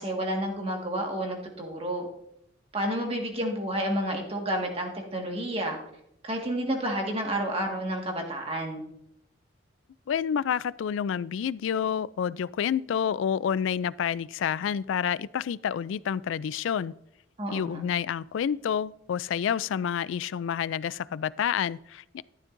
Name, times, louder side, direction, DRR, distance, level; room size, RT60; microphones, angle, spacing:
voice 1, 0.0-2.1 2.7-5.8 6.2-8.8 17.4-17.8, right 1 dB, 30° right, 1 dB, 1.7 m, -30 dB
voice 2, 10.1-16.9 17.5-22.2, left 8 dB, 75° left, 20 dB, 0.3 m, -29 dB
13.5 x 11.5 x 2.6 m, 0.76 s
head